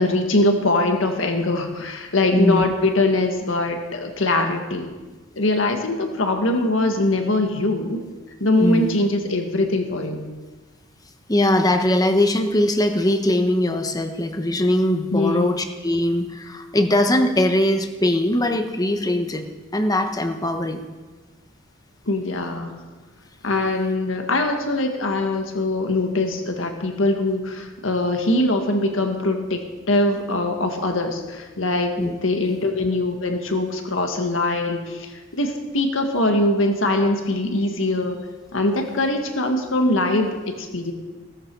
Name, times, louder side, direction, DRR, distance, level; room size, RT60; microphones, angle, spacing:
voice 1, 0.0-4.9 5.3-8.0 8.4-10.2 15.1-15.5 22.1-22.8 23.4-38.2 38.5-40.9, left 2 dB, 80° left, 4 dB, 1.7 m, -22 dB
voice 2, 2.3-2.6 8.6-9.0 11.3-19.5 19.7-20.8 32.0-32.2, left 1 dB, 20° left, 6 dB, 1.1 m, -21 dB
17.0 x 13.5 x 4.7 m, 1.3 s
head